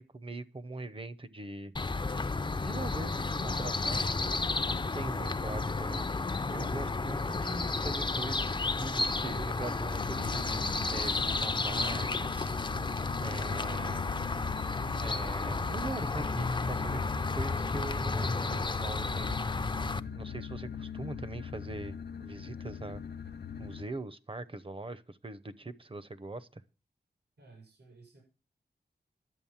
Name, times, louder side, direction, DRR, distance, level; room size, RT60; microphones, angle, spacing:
voice 1, 0.0-1.7 2.5-4.2 4.8-12.5 13.2-14.1 15.0-17.0 17.3-19.4 20.1-23.0 23.6-26.6, right 2 dB, 30° right, 0.8 m, -41 dB
sound 1, 1.8-20.0, left 3 dB, 25° left, 0.6 m, -32 dB
sound 2, 9.9-23.9, left 7 dB, 75° left, 0.8 m, -42 dB
voice 2, 27.4-28.2, right 3 dB, 75° right, 6.8 m, -55 dB
11.0 x 7.8 x 7.3 m
wide cardioid pair, 90°, 18 cm